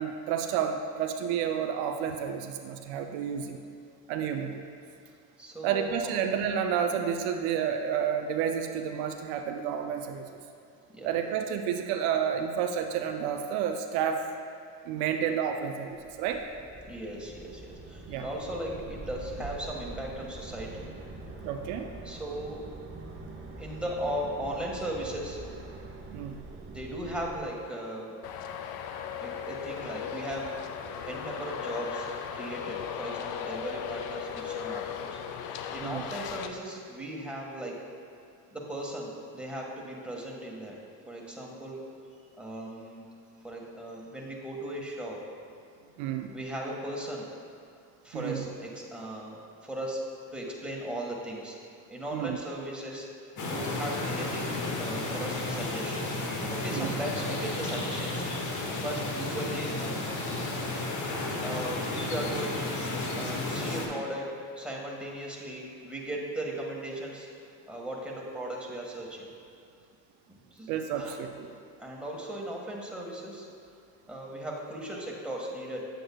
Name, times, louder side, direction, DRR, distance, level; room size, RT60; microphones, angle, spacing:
voice 1, 0.0-3.6 4.1-4.6 5.6-10.3 11.0-14.3 14.9-16.4 18.1-18.3 21.4-21.9 26.1-26.4 35.8-36.1 46.0-46.3 48.1-48.5 52.1-52.4 56.7-57.0 70.7-71.5, right 8 dB, 80° right, 5 dB, 0.5 m, -30 dB
voice 2, 5.4-6.1 10.9-11.2 16.9-20.8 22.0-22.7 23.6-25.4 26.7-28.2 29.2-30.5 31.0-32.1 32.3-37.8 38.5-40.8 41.1-41.9 42.4-43.0 43.4-45.2 46.3-47.3 48.0-50.0 50.3-51.6 51.9-53.1 53.4-58.3 58.8-60.0 61.4-62.6 63.2-67.3 67.7-69.3 70.5-71.1 71.8-73.5 74.1-75.8, right 1 dB, 5° right, -3 dB, 1.5 m, -37 dB
sound 1, 15.9-27.4, right 3 dB, 30° right, 1.0 m, -44 dB
Traffic noise roadway noise, 28.2-36.5, left 8 dB, 70° left, 0.6 m, -37 dB
sound 2, 53.4-63.9, left 2 dB, 50° left, 1.3 m, -32 dB
7.8 x 7.8 x 2.3 m, 2.4 s
supercardioid pair, 70°, 39 cm